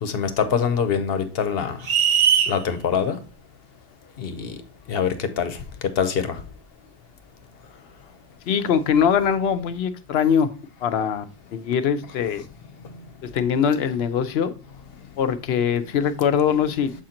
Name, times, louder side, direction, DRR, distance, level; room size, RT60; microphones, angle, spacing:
voice 1, 0.0-1.8 2.5-3.2 4.2-4.6 4.9-5.6 6.0-6.4 12.8-12.9, left 7 dB, 70° left, 1.0 m, -24 dB
sound 1, 1.8-2.6, right 8 dB, 70° right, 1.0 m, -19 dB
voice 2, 8.5-10.5 10.8-12.4 13.2-14.5 15.2-16.9, left 7 dB, 85° left, 0.9 m, -22 dB
7.0 x 4.3 x 3.7 m
omnidirectional pair, 1.0 m